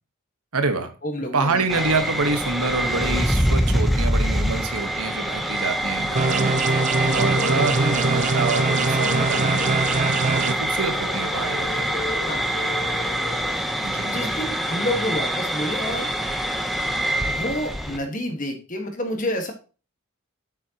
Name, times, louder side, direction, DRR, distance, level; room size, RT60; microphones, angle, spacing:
voice 1, 0.5-0.9 1.3-11.9 13.8-14.2, right 3 dB, 90° right, 8 dB, 1.2 m, -27 dB
voice 2, 1.0-1.9 6.9-7.3 12.3-12.4 14.0-16.1 17.2-19.5, left 1 dB, 35° left, 4 dB, 1.5 m, -29 dB
sound 1, 1.7-18.0, equal, ahead, 0.7 m, -25 dB
sound 2, 6.2-13.6, left 3 dB, 65° left, 3.9 m, -36 dB
sound 3, 6.2-10.5, right 4 dB, 35° right, 0.4 m, -23 dB
7.7 x 7.6 x 2.9 m, 0.34 s
head